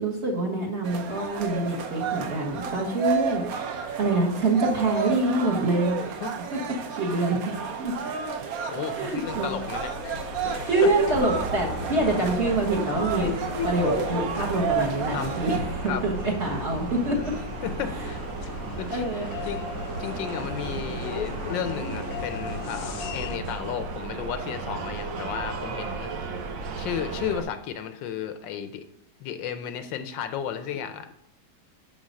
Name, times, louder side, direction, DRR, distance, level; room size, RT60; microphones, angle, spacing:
voice 1, 0.0-3.7 4.0-6.2 6.5-6.6 7.0-7.9 9.0-9.5 10.4-13.3 13.6-17.2 18.9-19.5, right 2 dB, 40° right, -1 dB, 1.5 m, -26 dB
sound 1, 0.8-15.6, right 7 dB, 60° right, 1.1 m, -32 dB
voice 2, 8.7-10.1 10.5-10.9 15.1-15.3 15.9-16.0 17.6-18.2 18.5-19.6 20.0-26.3 26.7-28.8 29.2-31.1, left 8 dB, 85° left, 10 dB, 1.5 m, -33 dB
sound 2, 9.3-23.4, left 7 dB, 65° left, 1.0 m, -37 dB
sound 3, 11.1-27.4, right 4 dB, 90° right, 1.6 m, -35 dB
10.5 x 3.9 x 6.4 m, 0.76 s
omnidirectional pair, 2.0 m